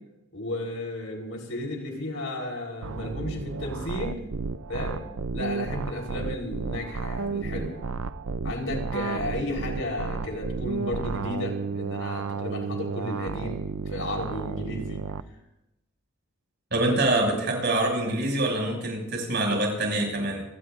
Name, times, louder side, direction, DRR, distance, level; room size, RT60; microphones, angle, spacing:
voice 1, 0.3-4.2 4.7-5.0 5.3-7.8 8.4-13.6 13.9-15.0, left 1 dB, 70° left, 0 dB, 4.3 m, -33 dB
sound 1, 2.8-15.2, right 4 dB, 85° right, 0.6 m, -32 dB
voice 2, 16.7-20.4, right 1 dB, 55° right, 0 dB, 6.8 m, -25 dB
27.5 x 18.0 x 2.6 m, 0.91 s
head